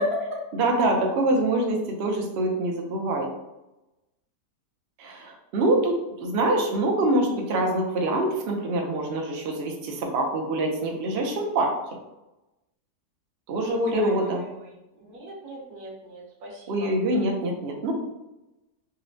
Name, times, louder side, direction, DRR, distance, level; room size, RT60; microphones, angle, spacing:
voice 1, 0.5-3.3 5.0-11.8 13.5-14.4 16.7-17.9, right 2 dB, 85° right, 1 dB, 0.5 m, -25 dB
voice 2, 13.7-14.3 15.1-16.9, left 2 dB, 70° right, -1 dB, 1.2 m, -32 dB
4.0 x 2.1 x 2.6 m, 0.97 s
omnidirectional pair, 1.8 m